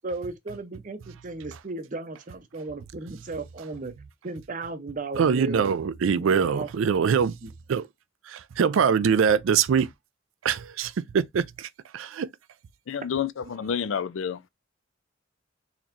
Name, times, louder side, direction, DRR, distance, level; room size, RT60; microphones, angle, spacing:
voice 1, 0.0-3.9 4.2-5.7 6.1-6.7 7.4-7.5, right 3 dB, 40° right, 0.6 m, -35 dB
voice 2, 5.2-7.3 7.7-7.9 8.3-9.9 10.4-12.3, right 6 dB, 80° right, 0.4 m, -23 dB
voice 3, 12.9-14.4, left 7 dB, 75° left, 0.4 m, -29 dB
4.2 x 2.9 x 2.5 m
head